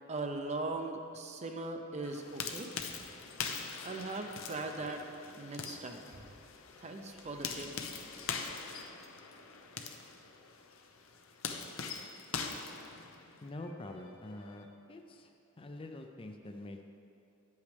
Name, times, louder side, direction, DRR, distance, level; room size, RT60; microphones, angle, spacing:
voice 1, 0.1-2.7 3.8-5.1 5.4-6.4 6.8-7.7, right 2 dB, 35° right, 5 dB, 0.6 m, -39 dB
sound 1, 2.0-13.5, left 5 dB, 80° left, 0.7 m, -43 dB
sound 2, 7.1-11.1 13.5-14.6, left 1 dB, 65° left, 1.7 m, -62 dB
voice 2, 13.4-16.8, left 1 dB, 25° left, 4 dB, 0.5 m, -46 dB
10.0 x 8.3 x 3.4 m, 2.7 s
head